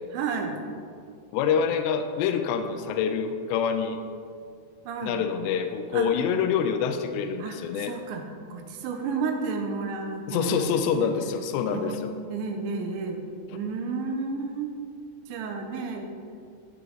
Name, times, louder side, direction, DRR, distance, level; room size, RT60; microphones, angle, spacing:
voice 1, 0.1-0.6 4.9-5.2 5.9-6.1 7.4-8.2 8.5-11.1 11.7-12.0 12.3-13.2 13.5-14.7 15.3-16.1, right 4 dB, 75° right, 4 dB, 2.9 m, -31 dB
voice 2, 1.3-4.0 5.0-7.9 10.3-12.1 13.5-13.6, left 7 dB, 90° left, 7 dB, 2.4 m, -26 dB
15.5 x 6.9 x 4.0 m, 2.3 s
omnidirectional pair, 5.6 m